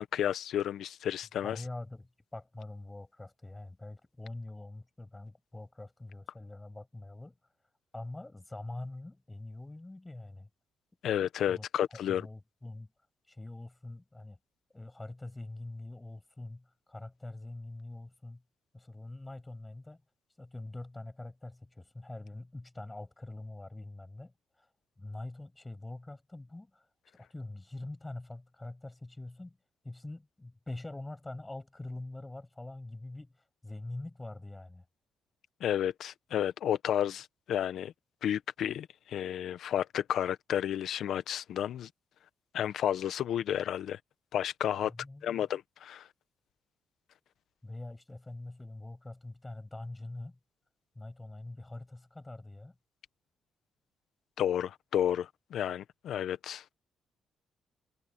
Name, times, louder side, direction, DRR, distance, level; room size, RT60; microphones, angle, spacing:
voice 1, 0.0-1.6 11.0-12.3 35.6-37.9 38.2-41.9 42.5-44.0 44.3-44.9 45.2-46.1 54.4-56.6, left 10 dB, 70° left, 1.3 m, -31 dB
voice 2, 1.4-7.3 7.9-10.5 11.5-11.7 11.9-12.9 13.3-14.4 14.7-18.4 18.7-20.0 20.4-24.3 25.0-26.8 27.1-29.6 29.8-33.3 33.6-34.8 44.8-45.5 47.6-50.4 51.0-52.7, left 2 dB, 15° left, 7.1 m, -44 dB
cardioid pair, 90°, 0 cm